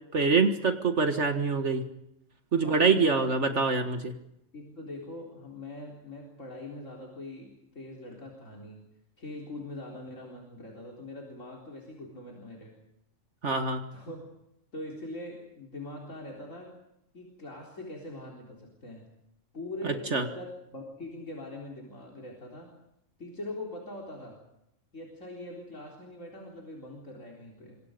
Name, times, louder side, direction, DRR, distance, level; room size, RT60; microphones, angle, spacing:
voice 1, 0.1-1.9 2.5-4.1 13.4-13.8 19.8-20.3, right 4 dB, 65° right, 6 dB, 2.0 m, -25 dB
voice 2, 2.6-3.1 4.5-8.9 9.2-12.8 13.9-14.3 14.7-16.8 17.1-19.1 19.5-22.7 23.2-24.4 24.9-27.8, left 1 dB, 80° left, -1 dB, 4.4 m, -42 dB
27.0 x 25.0 x 5.2 m, 0.82 s
omnidirectional pair, 1.3 m